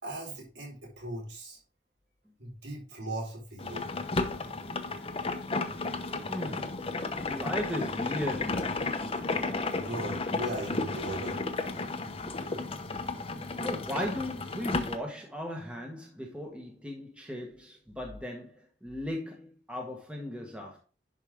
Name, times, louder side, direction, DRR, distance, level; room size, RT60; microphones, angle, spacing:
voice 1, 0.0-1.6 2.4-3.9 9.7-11.4, right 1 dB, 85° right, 3.9 m, -38 dB
sound 1, 3.6-15.0, left 3 dB, 35° left, 0.9 m, -33 dB
voice 2, 6.3-6.8 7.2-8.8 13.6-20.8, left 1 dB, 5° right, 1.3 m, -37 dB
11.0 x 4.9 x 3.6 m
head